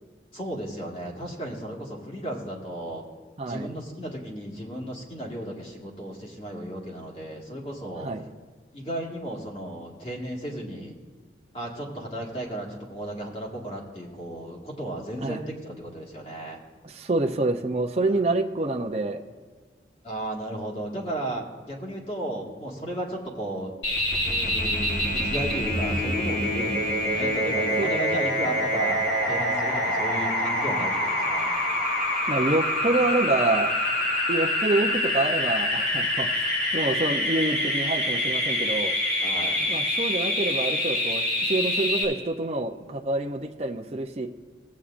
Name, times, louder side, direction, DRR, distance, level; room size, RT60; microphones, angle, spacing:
voice 1, 0.3-3.0 3.5-8.1 8.7-11.0 11.5-16.6 20.0-23.7 24.2-29.0 29.2-31.5 39.2-39.6, right 1 dB, 35° left, -1 dB, 1.8 m, -34 dB
voice 2, 16.8-19.2 27.8-27.9 30.7-30.9 32.3-33.7 34.3-36.4 36.7-38.9 39.6-44.3, right 2 dB, 35° right, 3 dB, 0.5 m, -27 dB
sound 1, 23.8-42.0, left 1 dB, 65° left, 3.1 m, -26 dB
16.5 x 8.3 x 2.5 m, 1.5 s
head